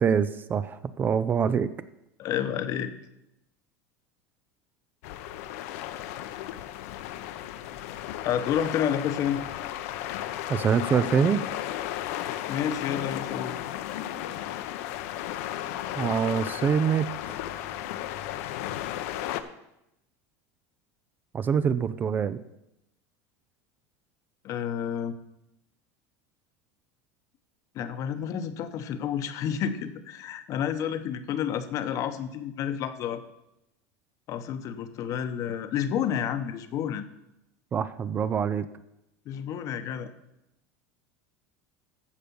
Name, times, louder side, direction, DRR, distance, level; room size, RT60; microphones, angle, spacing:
voice 1, 0.0-1.7 10.5-11.4 16.0-17.1 21.3-22.4 37.7-38.7, right 7 dB, 25° right, 14 dB, 0.4 m, -25 dB
voice 2, 2.2-2.9 8.2-9.4 12.5-13.5 24.4-25.1 27.7-33.2 34.3-37.0 39.3-40.1, left 9 dB, 45° left, 10 dB, 1.0 m, -30 dB
sound 1, 5.0-19.4, left 12 dB, 75° left, 0.8 m, -34 dB
14.5 x 5.1 x 6.9 m, 0.86 s
supercardioid pair, 145°, 8 cm